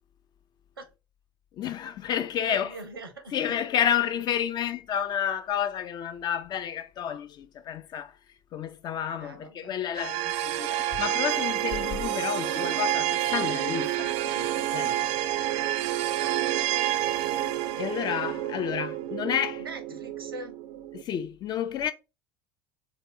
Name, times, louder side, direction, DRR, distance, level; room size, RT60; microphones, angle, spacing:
voice 1, 1.5-2.8 3.3-8.2 8.5-15.1 17.8-19.6 20.9-21.9, left 9 dB, 35° left, 0.4 m, -30 dB
voice 2, 2.5-3.6 9.1-9.8 16.1-17.3 19.6-20.6, right 2 dB, 90° right, 0.7 m, -43 dB
sound 1, 9.9-21.0, right 13 dB, 60° right, 0.4 m, -29 dB
2.8 x 2.2 x 3.7 m
figure-of-eight pair, 70°, 12 cm